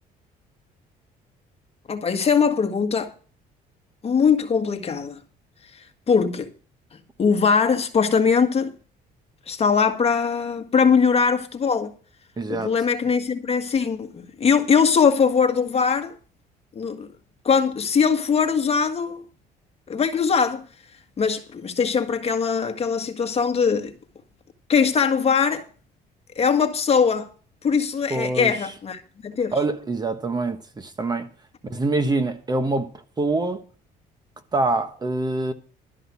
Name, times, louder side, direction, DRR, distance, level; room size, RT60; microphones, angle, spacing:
voice 1, 1.9-3.1 4.0-5.2 5.7-6.5 7.2-8.7 9.5-11.9 12.5-16.1 16.7-17.1 17.4-19.2 19.9-20.6 21.2-23.9 24.7-25.6 26.3-27.3 27.6-29.6, left 6 dB, 35° left, 1.7 m, -21 dB
voice 2, 12.4-12.7 28.1-28.5 29.5-31.3 31.6-32.9 33.2-33.6 34.5-35.5, right 2 dB, 25° right, 1.3 m, -25 dB
12.5 x 5.5 x 8.4 m
cardioid pair, 110°, 17 cm